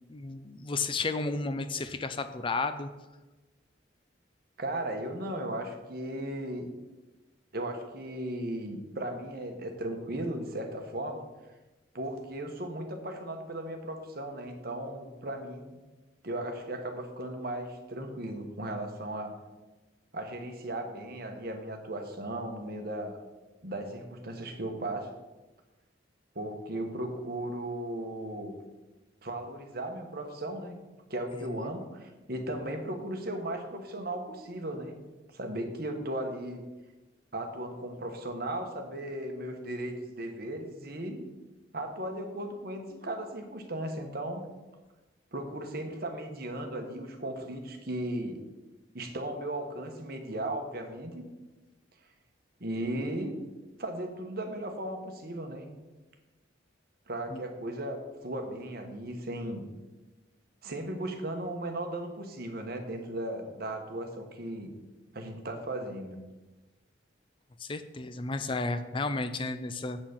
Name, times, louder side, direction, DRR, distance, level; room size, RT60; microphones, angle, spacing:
voice 1, 0.1-2.9 31.5-31.7 57.3-57.4 67.6-70.0, left 3 dB, 25° left, 10 dB, 0.4 m, -33 dB
voice 2, 4.6-6.7 7.5-11.2 11.9-15.8 16.2-19.3 20.1-23.2 23.6-25.1 26.3-28.5 29.2-30.8 31.1-35.0 35.3-36.6 37.3-41.2 41.7-44.4 45.3-48.4 48.9-51.2 52.6-53.4 53.8-55.7 57.1-59.6 60.6-64.7 65.1-66.2, right 1 dB, 55° right, 4 dB, 1.3 m, -36 dB
8.3 x 6.0 x 6.0 m, 1.1 s
head